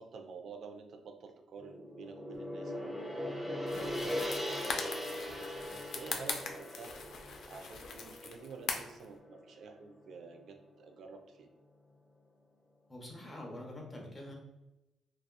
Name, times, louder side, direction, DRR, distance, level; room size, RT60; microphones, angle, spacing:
voice 1, 0.0-4.9 5.2-7.0 7.5-11.5, right 4 dB, 65° right, 5 dB, 0.3 m, -50 dB
Gong, 1.5-9.9, left 1 dB, 5° right, 1.1 m, -40 dB
sound 1, 3.7-9.1, left 5 dB, 65° left, 0.3 m, -41 dB
voice 2, 12.9-14.3, left 1 dB, 20° left, -1 dB, 0.7 m, -45 dB
2.7 x 2.2 x 2.2 m, 0.94 s
cardioid pair, 90°, 0 cm